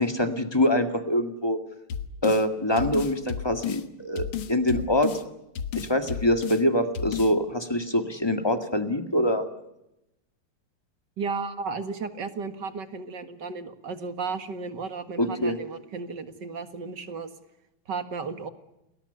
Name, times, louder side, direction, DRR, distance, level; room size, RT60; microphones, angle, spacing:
voice 1, 0.0-1.6 2.2-5.1 5.7-9.5 15.2-15.6, left 1 dB, 10° left, 7 dB, 1.8 m, -24 dB
sound 1, 1.9-2.4 2.8-3.8 4.2-5.2 5.6-6.6 6.9-7.3, left 8 dB, 70° left, 2.1 m, -32 dB
voice 2, 11.2-17.3 17.9-18.5, right 4 dB, 55° right, 9 dB, 2.3 m, -34 dB
29.5 x 21.0 x 7.0 m, 0.89 s
omnidirectional pair, 2.3 m